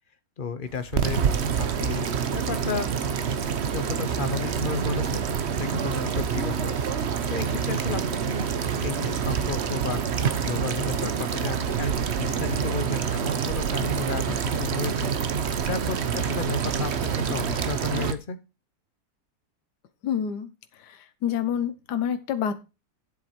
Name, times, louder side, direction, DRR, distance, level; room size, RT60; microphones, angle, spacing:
voice 1, 0.4-2.9 3.7-8.5 8.8-15.1 15.6-18.4, left 5 dB, 40° left, 10 dB, 0.7 m, -33 dB
sound 1, 0.7-18.1, right 7 dB, 50° right, 0.8 m, -27 dB
voice 2, 20.0-20.5 20.8-22.5, left 8 dB, 65° left, 9 dB, 1.6 m, -28 dB
9.7 x 7.7 x 4.4 m, 0.30 s
omnidirectional pair, 2.0 m